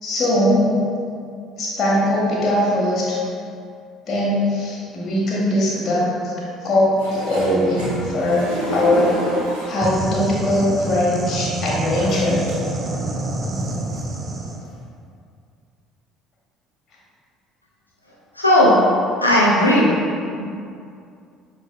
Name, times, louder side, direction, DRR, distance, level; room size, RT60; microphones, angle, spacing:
voice 1, 0.0-0.7 1.6-3.2 4.1-6.3 6.6-8.4 8.7-9.1 9.7-12.5, left 1 dB, 40° left, -5 dB, 1.2 m, -20 dB
sound 1, 7.0-10.0 10.9-11.0 12.0-12.5 13.1-13.2 13.6-14.0 14.7-14.8, right 1 dB, 75° right, 1.1 m, -28 dB
sound 2, 9.8-14.6, right 2 dB, 25° right, 0.4 m, -27 dB
voice 2, 18.4-18.8 19.2-19.9 20.4-20.5, left 1 dB, 85° left, -5 dB, 0.6 m, -15 dB
6.0 x 3.3 x 2.2 m, 2.4 s
figure-of-eight pair, 55°, 0 cm